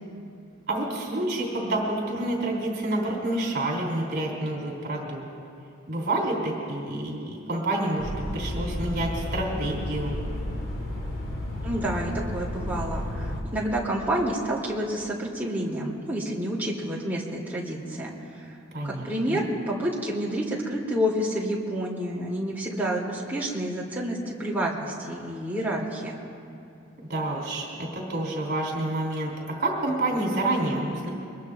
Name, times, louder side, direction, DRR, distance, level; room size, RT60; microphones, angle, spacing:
voice 1, 0.7-5.2 5.9-10.1 18.7-19.5 27.1-31.1, right 1 dB, 55° right, -3 dB, 2.8 m, -28 dB
sound 1, 8.0-13.4, left 1 dB, 90° left, 3.4 m, -32 dB
voice 2, 11.6-18.6 18.8-26.1, equal, 10° right, -5 dB, 2.6 m, -29 dB
24.0 x 21.0 x 2.4 m, 2.5 s
head